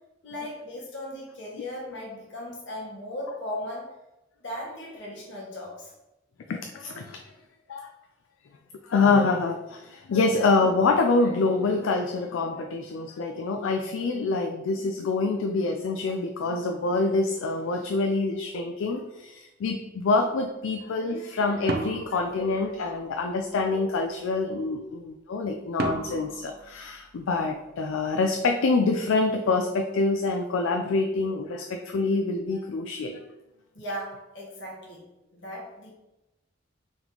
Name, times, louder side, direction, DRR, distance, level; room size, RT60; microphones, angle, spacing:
voice 1, 0.2-3.9 4.4-5.9 33.7-35.0 35.3-35.9, left 1 dB, 60° left, -3 dB, 1.4 m, -37 dB
voice 2, 6.5-7.2 7.7-7.9 8.8-33.2, left 3 dB, 75° left, 4 dB, 0.4 m, -26 dB
sound 1, 21.7-23.2 25.8-27.6, right 2 dB, 50° right, 0.4 m, -34 dB
3.7 x 3.0 x 3.8 m, 0.99 s
head